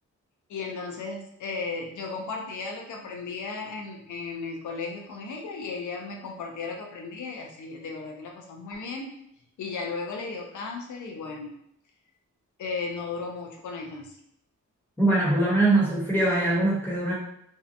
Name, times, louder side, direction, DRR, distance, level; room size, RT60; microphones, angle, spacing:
voice 1, 0.5-9.1 9.6-11.5 12.6-14.2, left 4 dB, 80° left, 1 dB, 0.5 m, -35 dB
voice 2, 15.0-17.1, right 2 dB, 5° left, -7 dB, 0.8 m, -22 dB
2.7 x 2.1 x 2.5 m, 0.74 s
wide cardioid pair, 130°, 30 cm